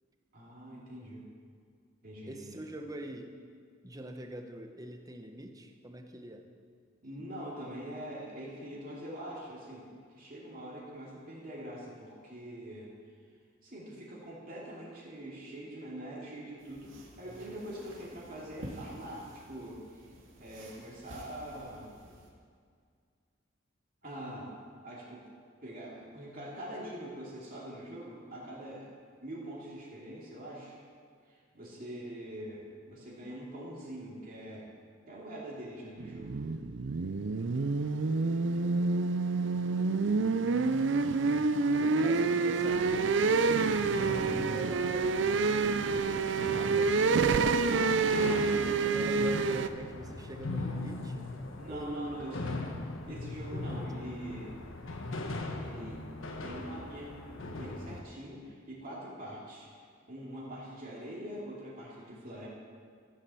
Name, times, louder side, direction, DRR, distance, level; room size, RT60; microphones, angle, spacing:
voice 1, 0.3-1.2 2.0-2.7 7.0-12.9 13.6-21.9 24.0-24.5 24.8-25.2 25.6-28.9 29.2-30.8 31.3-34.7 35.1-36.4 41.2-42.1 42.6-42.7 47.7-48.7 51.6-52.6 53.0-54.6 55.6-56.0 56.4-59.7 60.1-62.5, right 1 dB, 45° right, -5 dB, 2.7 m, -44 dB
voice 2, 2.3-3.4 3.8-6.5 41.8-45.2 45.5-48.3 48.6-51.3 51.7-52.4, right 1 dB, 20° right, 5 dB, 0.9 m, -44 dB
sound 1, 16.6-22.3, right 1 dB, 80° right, 2.0 m, -50 dB
sound 2, 36.0-49.7, right 4 dB, 65° right, 0.5 m, -28 dB
sound 3, 42.7-58.0, left 2 dB, 85° left, 1.2 m, -40 dB
14.0 x 7.4 x 6.9 m, 2.1 s
head